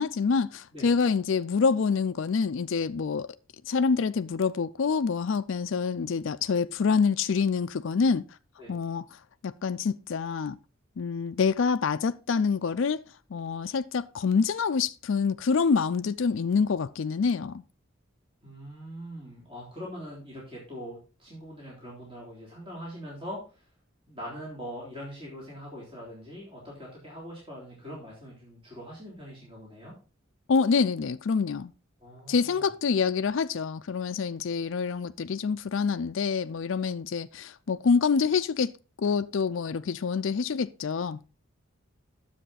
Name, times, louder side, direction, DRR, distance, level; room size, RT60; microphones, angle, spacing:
voice 1, 0.0-3.3 3.7-8.2 8.7-9.0 9.4-10.6 11.0-13.0 13.3-17.6 30.5-31.7 32.3-38.7 39.0-41.2, left 5 dB, 65° left, 0.4 m, -26 dB
voice 2, 18.4-23.6 24.1-29.9 32.0-32.7, equal, 25° right, 3.5 m, -42 dB
10.0 x 7.2 x 4.1 m
head